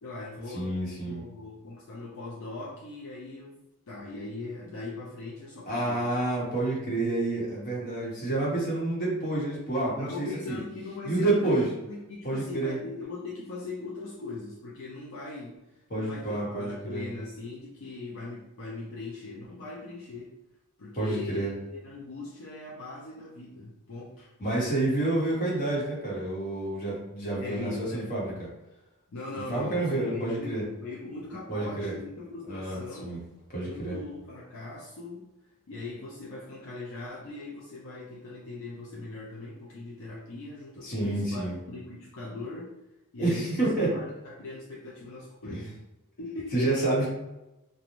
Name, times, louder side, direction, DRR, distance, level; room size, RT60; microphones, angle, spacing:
voice 1, 0.0-0.7 1.0-6.1 9.9-20.3 20.8-24.3 27.4-28.1 29.1-33.2 33.6-35.3 35.7-42.7 43.1-45.8 46.2-47.0, left 3 dB, 60° left, -5 dB, 0.5 m, -40 dB
voice 2, 0.5-1.2 5.7-10.6 11.0-11.6 12.2-12.8 15.9-17.0 20.9-21.5 24.4-28.3 29.5-30.6 31.5-31.9 32.5-33.2 33.5-34.0 40.8-41.6 43.2-43.9 45.4-45.7 46.5-47.1, right 2 dB, 40° left, -6 dB, 1.0 m, -29 dB
3.0 x 2.1 x 2.5 m, 0.97 s
head